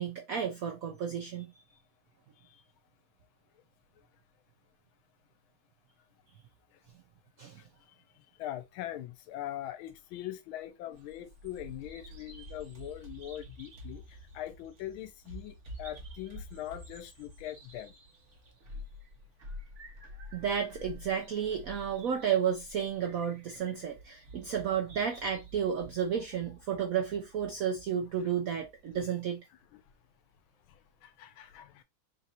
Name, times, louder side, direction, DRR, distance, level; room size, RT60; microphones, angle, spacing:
voice 1, 0.0-1.5 7.4-7.6 20.3-29.4, right 8 dB, 75° right, 0.7 m, -32 dB
voice 2, 8.4-17.9 29.7-29.8 31.0-31.8, left 13 dB, 90° left, 1.4 m, -42 dB
Bird vocalization bird call bird song, 10.9-29.1, equal, 45° right, 1.0 m, -49 dB
3.8 x 2.5 x 4.2 m
omnidirectional pair, 2.2 m